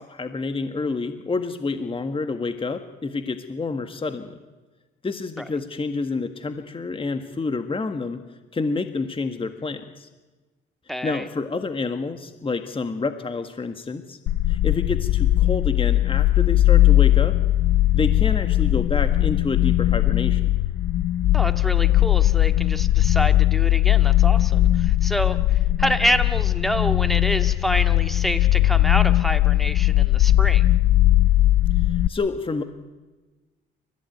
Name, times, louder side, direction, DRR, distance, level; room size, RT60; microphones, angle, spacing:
voice 1, 0.0-4.4 5.0-8.2 8.5-10.1 11.0-14.2 14.5-17.4 17.9-20.5 31.8-32.6, left 3 dB, 25° left, 8 dB, 1.6 m, -28 dB
voice 2, 10.9-11.3 21.3-30.6, equal, ahead, 7 dB, 2.0 m, -27 dB
sound 1, 14.3-32.1, left 14 dB, 85° left, 0.7 m, -19 dB
29.0 x 15.0 x 9.3 m, 1.2 s
cardioid pair, 90°, 20 cm